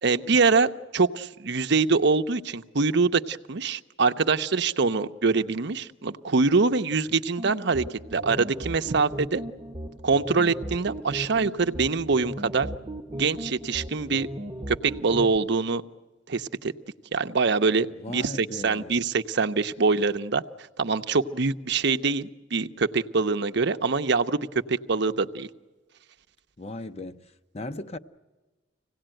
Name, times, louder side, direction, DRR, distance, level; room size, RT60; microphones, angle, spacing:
voice 1, 0.0-7.8 8.1-9.4 10.0-12.7 13.1-14.3 14.7-15.8 16.3-16.7 17.1-20.4 20.8-24.4 24.7-25.5, right 4 dB, 65° right, 0.8 m, -24 dB
sound 1, 7.4-15.4, right 1 dB, 25° right, 0.9 m, -37 dB
voice 2, 18.0-19.0 26.6-28.0, left 2 dB, 35° left, 0.7 m, -37 dB
25.5 x 17.5 x 9.0 m
head